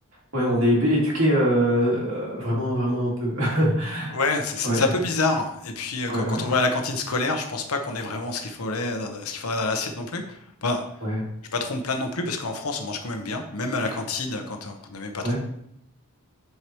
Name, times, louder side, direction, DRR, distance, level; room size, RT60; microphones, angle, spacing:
voice 1, 0.3-4.2 4.6-4.9 6.1-6.5 11.0-11.2 13.8-14.0 15.2-15.4, equal, 60° right, -4 dB, 2.7 m, -23 dB
voice 2, 4.1-10.9 11.5-15.4, left 3 dB, 80° left, 5 dB, 1.0 m, -27 dB
9.6 x 4.8 x 3.0 m, 0.75 s
head